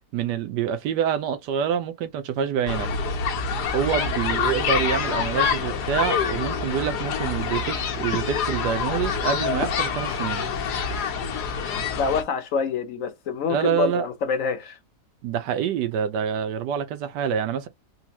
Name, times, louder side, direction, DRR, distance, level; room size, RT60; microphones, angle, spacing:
voice 1, 0.1-2.9 3.7-10.4 13.5-14.1 15.2-17.7, right 8 dB, 85° right, 1.3 m, -26 dB
sound 1, 2.7-12.2, left 6 dB, 75° left, 1.4 m, -26 dB
voice 2, 12.0-14.8, left 5 dB, 55° left, 1.1 m, -26 dB
4.3 x 2.2 x 2.9 m
omnidirectional pair, 1.8 m